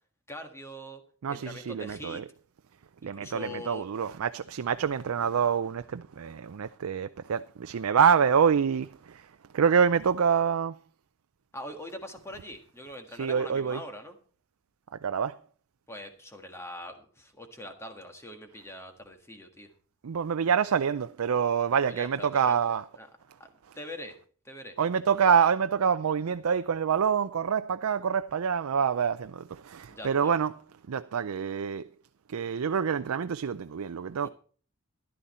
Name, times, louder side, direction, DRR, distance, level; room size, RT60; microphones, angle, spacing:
voice 1, 0.3-1.0 1.3-2.2 3.0-3.9 11.5-14.2 15.9-19.7 21.8-22.6 23.0-23.1 23.7-24.2 24.4-24.8 29.9-30.3 34.2-34.3, left 1 dB, 10° left, 1.6 m, -42 dB
voice 2, 1.2-2.2 3.0-10.8 13.1-13.8 14.9-15.4 20.0-22.8 24.8-30.5 30.9-31.9 32.3-34.3, right 7 dB, 80° right, 0.5 m, -26 dB
14.0 x 11.5 x 4.3 m
head